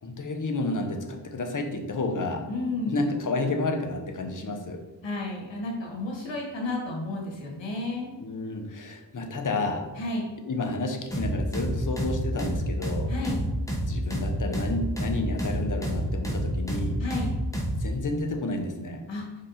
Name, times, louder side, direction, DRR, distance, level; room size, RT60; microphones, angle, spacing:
voice 1, 0.0-2.5 2.9-4.8 8.2-9.9 10.5-13.1 13.9-17.0 17.8-19.0, left 2 dB, 45° left, 4 dB, 1.0 m, -30 dB
voice 2, 2.5-2.9 5.0-8.1 10.0-10.3 13.1-13.4 17.0-17.3 19.1-19.2, left 2 dB, 75° left, -1 dB, 2.0 m, -32 dB
sound 1, 11.1-17.8, equal, 5° left, 1.4 m, -29 dB
5.3 x 4.9 x 4.3 m, 1.1 s
cardioid pair, 80°, 45 cm